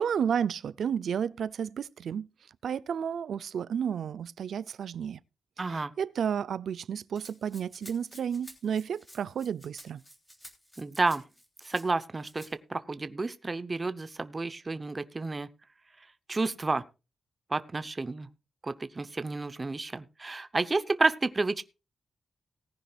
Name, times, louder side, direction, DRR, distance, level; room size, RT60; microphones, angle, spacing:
voice 1, 0.0-2.3 2.6-5.2 5.6-10.0, right 8 dB, 70° right, 0.5 m, -32 dB
voice 2, 5.6-5.9 10.8-11.2 11.7-12.4 12.7-15.5 16.3-16.8 17.5-18.3 18.6-21.6, right 3 dB, 20° right, 0.8 m, -30 dB
Rattle (instrument), 7.2-11.9 12.2-12.5, equal, 5° left, 3.1 m, -52 dB
18.5 x 10.5 x 2.4 m
wide cardioid pair, 175°, 0 cm